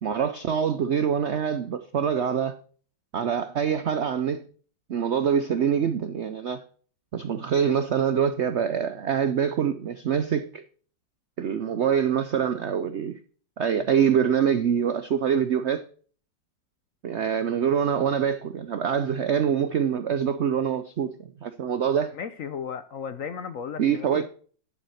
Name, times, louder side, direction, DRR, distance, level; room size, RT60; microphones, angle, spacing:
voice 1, 0.0-2.6 3.1-4.4 4.9-6.6 7.1-10.6 11.4-13.2 13.6-15.8 17.0-22.1 23.8-24.3, right 8 dB, 85° right, 0.6 m, -25 dB
voice 2, 22.1-24.3, left 7 dB, 60° left, 0.9 m, -35 dB
11.0 x 8.0 x 4.2 m
omnidirectional pair, 2.0 m